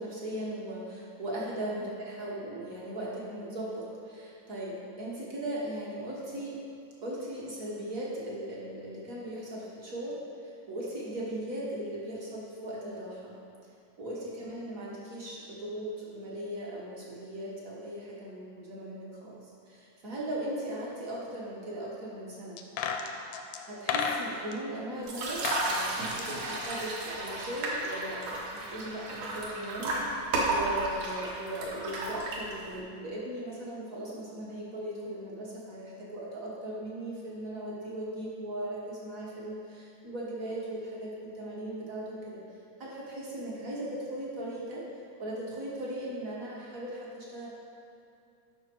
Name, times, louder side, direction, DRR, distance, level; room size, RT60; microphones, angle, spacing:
voice 1, 0.0-6.6 7.0-13.4 14.0-22.6 23.7-42.4 42.8-44.8 45.2-47.5, right 1 dB, 55° right, -5 dB, 0.9 m, -38 dB
sound 1, 22.6-24.6 25.2-25.7 26.0-27.3 27.6-27.7, left 6 dB, 80° left, 1.5 m, -33 dB
sound 2, 25.0-32.8, right 2 dB, 70° right, 2.6 m, -33 dB
11.5 x 5.9 x 4.6 m, 2.5 s
omnidirectional pair, 3.7 m